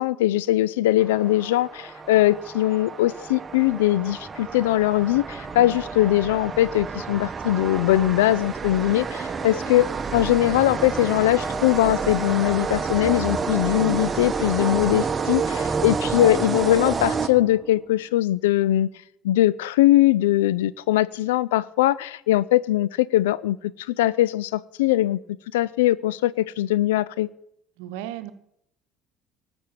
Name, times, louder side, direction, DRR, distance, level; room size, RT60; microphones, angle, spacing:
voice 1, 0.0-18.9 19.2-23.6 23.9-25.2 25.5-27.3, left 15 dB, 80° left, 0.4 m, -21 dB
sound 1, 1.0-17.8, right 5 dB, 35° right, 1.0 m, -29 dB
voice 2, 27.8-28.3, right 12 dB, 75° right, 0.9 m, -35 dB
13.0 x 6.1 x 8.7 m
hypercardioid pair, 60°, 0 cm